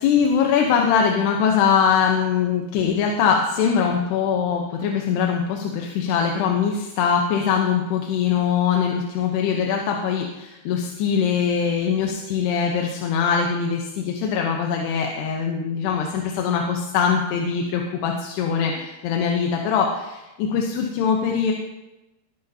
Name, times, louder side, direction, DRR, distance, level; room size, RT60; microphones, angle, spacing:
voice 1, 0.0-21.5, left 7 dB, 80° left, 1 dB, 2.9 m, -22 dB
20.5 x 10.5 x 2.8 m, 1.0 s
omnidirectional pair, 4.9 m